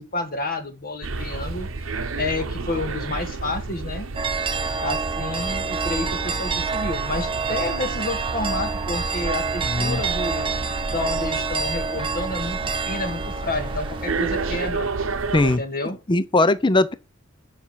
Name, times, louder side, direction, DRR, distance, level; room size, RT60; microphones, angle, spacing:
voice 1, 0.0-4.1 4.8-10.5 10.9-14.9 15.4-16.0, left 2 dB, 45° left, 1.7 m, -30 dB
sound 1, 1.0-15.6, right 3 dB, 70° right, 0.9 m, -31 dB
sound 2, 4.1-14.7, right 5 dB, 25° right, 0.7 m, -28 dB
voice 2, 9.6-10.0 15.3-15.6 16.1-16.9, left 2 dB, 25° left, 0.6 m, -19 dB
7.1 x 5.5 x 5.7 m
head